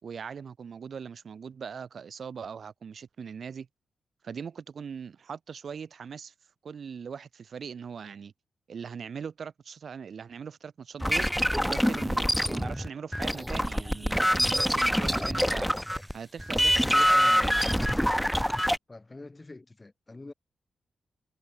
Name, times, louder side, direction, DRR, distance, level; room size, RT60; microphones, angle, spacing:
voice 1, 0.0-3.7 4.2-6.3 6.6-8.3 8.7-11.3 11.7-15.7 16.1-17.9, right 6 dB, 55° right, 2.5 m, -40 dB
sound 1, 11.0-16.1 16.4-18.8, equal, ahead, 0.3 m, -25 dB
voice 2, 18.9-20.3, left 2 dB, 20° left, 1.5 m, -46 dB
wide cardioid pair, 120°, 0 cm